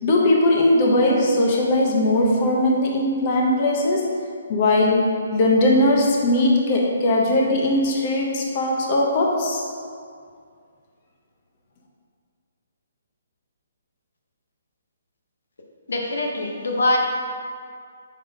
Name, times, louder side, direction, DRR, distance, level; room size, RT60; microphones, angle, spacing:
voice 1, 0.0-4.1 4.5-9.6, left 1 dB, 40° left, -2 dB, 1.0 m, -19 dB
voice 2, 15.9-17.0, left 2 dB, 80° left, 0 dB, 0.9 m, -23 dB
5.3 x 4.0 x 5.2 m, 2.2 s
hypercardioid pair, 150°, 0 cm